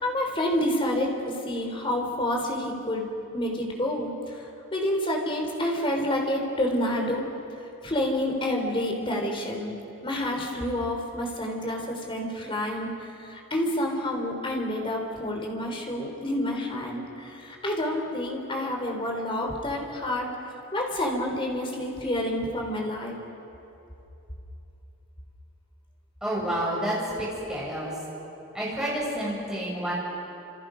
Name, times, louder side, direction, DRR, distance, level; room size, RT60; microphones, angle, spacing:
voice 1, 0.0-3.1 3.3-7.3 7.8-9.7 10.0-20.3 20.7-23.2, left 1 dB, 25° left, 0 dB, 3.6 m, -28 dB
voice 2, 26.2-27.9 28.5-29.9, right 1 dB, 5° right, -6 dB, 7.4 m, -29 dB
29.5 x 28.0 x 5.2 m, 2.9 s
head